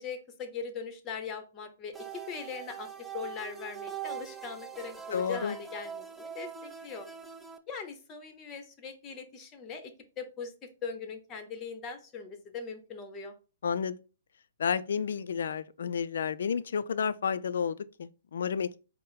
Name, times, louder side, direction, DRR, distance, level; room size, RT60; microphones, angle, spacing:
voice 1, 0.0-2.9 3.1-7.1 7.7-13.3, left 5 dB, 25° left, 0.8 m, -41 dB
sound 1, 1.9-7.6, right 8 dB, 5° right, 0.4 m, -42 dB
voice 2, 5.1-5.6 13.6-14.0 14.6-18.8, left 6 dB, 75° left, 0.3 m, -31 dB
4.6 x 2.0 x 4.6 m
hypercardioid pair, 145°, 0 cm